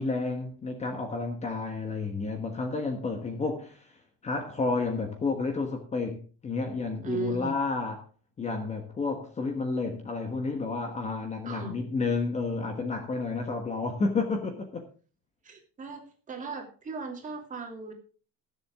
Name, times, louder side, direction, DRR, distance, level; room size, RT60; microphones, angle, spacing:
voice 1, 0.0-3.9 4.2-8.0 8.4-14.8, left 3 dB, 20° left, 1.3 m, -31 dB
voice 2, 7.0-7.6 11.4-11.7 15.4-17.9, right 4 dB, 25° right, 2.8 m, -37 dB
20.0 x 7.5 x 3.6 m
cardioid pair, 170°, 34 cm